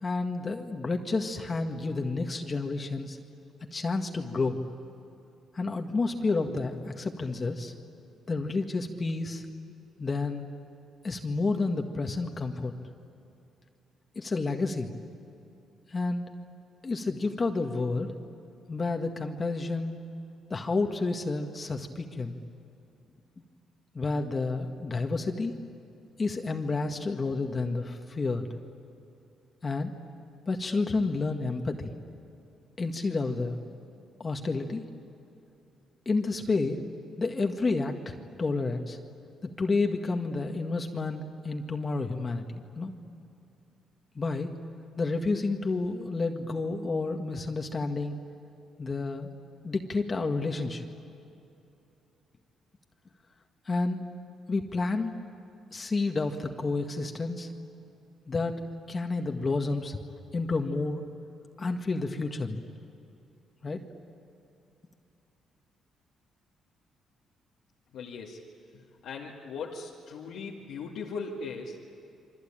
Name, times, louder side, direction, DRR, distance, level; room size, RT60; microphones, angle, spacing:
voice 1, 0.0-3.2 3.7-4.6 5.5-7.7 8.3-9.4 10.0-10.5 11.0-12.7 14.1-14.9 15.9-16.2 16.8-18.1 18.7-20.0 20.5-22.3 23.9-25.5 26.2-28.5 29.6-29.9 30.5-31.9 32.8-33.6 34.2-34.8 36.0-36.8 37.2-39.0 39.4-42.4 42.8-42.9 44.1-44.5 45.0-48.2 48.8-49.3 49.6-50.8 53.6-54.0 54.5-55.1 55.7-57.5 58.3-58.6 58.9-60.0 60.3-61.0 61.6-62.6 63.6-63.8, left 3 dB, 35° left, 4 dB, 1.7 m, -30 dB
voice 2, 67.9-68.4 69.0-71.9, left 4 dB, 85° left, -4 dB, 2.2 m, -38 dB
27.5 x 24.0 x 9.0 m, 2.7 s
cardioid pair, 90°, 0 cm